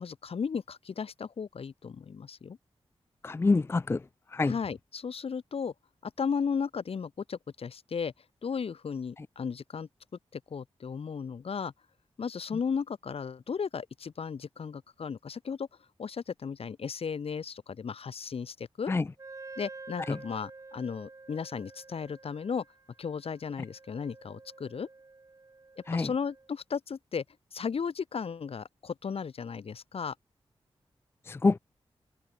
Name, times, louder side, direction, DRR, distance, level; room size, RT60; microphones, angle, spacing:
voice 1, 0.0-2.6 4.4-5.7 6.0-8.1 8.4-9.9 10.3-11.7 12.2-15.7 16.0-18.9 19.6-22.6 23.0-24.9 25.9-27.2 27.5-30.1, left 6 dB, 70° left, 4.2 m, -35 dB
voice 2, 3.2-4.0 4.4-4.5 18.9-19.0 25.9-26.1 31.3-31.6, left 3 dB, 25° left, 0.4 m, -25 dB
Wind instrument woodwind instrument, 19.2-26.5, right 3 dB, 30° right, 7.2 m, -49 dB
wide cardioid pair, 175°, 10 cm